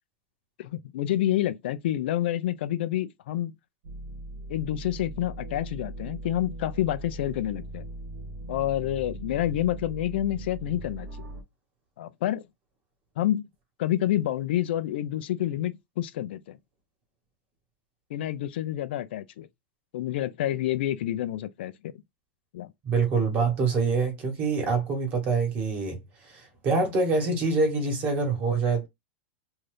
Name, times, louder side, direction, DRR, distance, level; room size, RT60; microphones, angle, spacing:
voice 1, 0.6-3.5 4.5-7.9 8.5-11.3 12.0-12.4 13.2-13.4 13.8-16.6 18.1-19.5 19.9-21.9 22.5-22.7, left 13 dB, 65° left, 0.4 m, -28 dB
sound 1, 3.8-11.4, right 1 dB, 55° right, 1.0 m, -39 dB
voice 2, 22.8-26.0 26.2-28.9, right 4 dB, 30° right, 1.2 m, -25 dB
2.6 x 2.4 x 3.3 m
supercardioid pair, 155°, 6 cm